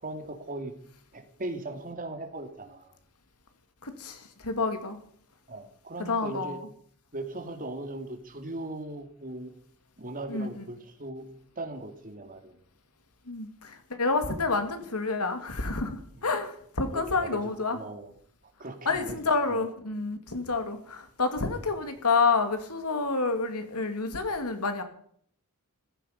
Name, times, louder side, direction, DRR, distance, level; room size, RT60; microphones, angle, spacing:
voice 1, 0.0-0.7 1.1-2.9 5.5-6.6 7.1-9.5 10.0-11.3 11.6-12.6 16.2-16.3 16.9-18.1 18.6-19.2 19.5-19.7, right 2 dB, 40° right, 5 dB, 2.6 m, -38 dB
voice 2, 3.8-5.0 6.1-6.6 10.3-10.5 13.3-17.8 18.9-24.8, left 4 dB, 85° left, 7 dB, 2.6 m, -29 dB
15.5 x 15.0 x 5.3 m, 0.62 s
head